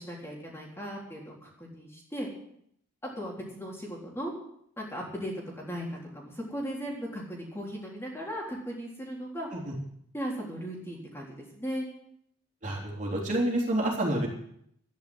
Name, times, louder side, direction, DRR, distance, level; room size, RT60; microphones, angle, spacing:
voice 1, 0.0-2.3 3.0-4.3 4.8-9.5 10.1-11.9, equal, 10° left, -3 dB, 3.7 m, -37 dB
voice 2, 12.6-14.3, right 1 dB, 35° right, -3 dB, 3.7 m, -28 dB
12.5 x 10.5 x 7.9 m, 0.70 s
head